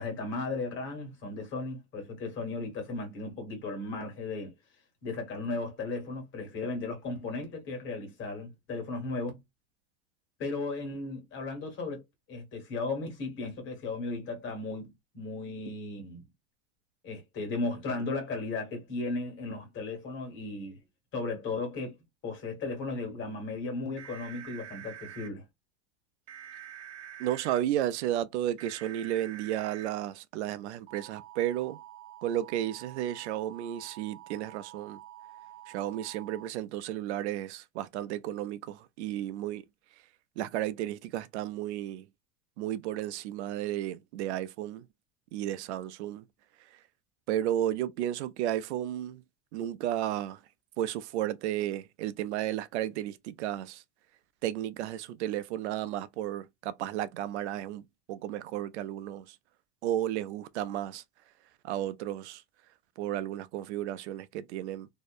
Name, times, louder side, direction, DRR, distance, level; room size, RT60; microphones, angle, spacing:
voice 1, 0.0-4.5 5.0-9.4 10.4-16.2 17.0-20.8 21.1-22.0 22.2-25.4, left 3 dB, 35° left, 1.4 m, -36 dB
sound 1, 24.0-25.3 26.3-27.6 28.6-29.9 30.9-36.5, right 11 dB, 55° right, 0.9 m, -47 dB
voice 2, 27.2-31.8 32.2-35.0 35.7-39.6 40.4-42.1 42.6-44.9 45.3-46.2 46.7-46.8 47.3-49.2 49.5-50.4 50.8-53.8 54.4-59.4 59.8-61.0 61.6-62.4 63.0-64.9, right 12 dB, 85° right, 0.5 m, -33 dB
2.7 x 2.1 x 2.3 m
supercardioid pair, 140°, 34 cm